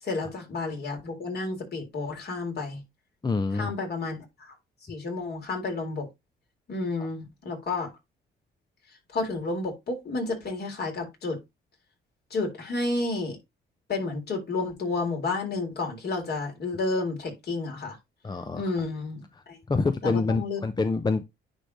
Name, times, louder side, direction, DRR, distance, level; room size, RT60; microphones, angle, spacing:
voice 1, 0.0-2.8 3.5-4.5 4.8-6.1 6.7-7.9 9.1-11.4 12.3-13.4 13.9-18.0 18.5-19.6 20.0-20.6, left 3 dB, 55° left, 3.7 m, -31 dB
voice 2, 3.2-3.7 18.2-18.6 19.7-21.2, left 3 dB, 20° left, 0.7 m, -26 dB
9.9 x 3.4 x 4.0 m
cardioid pair, 90°, 20 cm